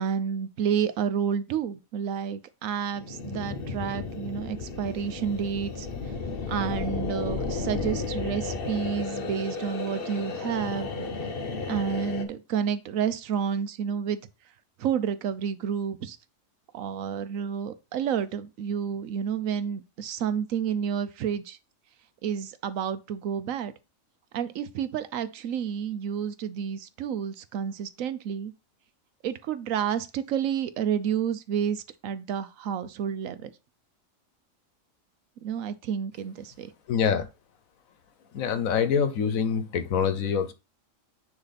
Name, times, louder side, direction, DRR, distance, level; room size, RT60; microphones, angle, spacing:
voice 1, 0.0-5.9 6.5-10.9 11.6-14.2 14.8-16.2 16.7-21.6 22.2-23.7 24.3-28.5 29.2-33.5 35.4-36.7, right 8 dB, 80° right, 1.1 m, -30 dB
sound 1, 2.9-12.2, left 4 dB, 50° left, 1.1 m, -33 dB
voice 2, 36.9-37.3 38.3-40.5, left 7 dB, 90° left, 1.3 m, -25 dB
9.8 x 3.3 x 4.1 m
omnidirectional pair, 1.4 m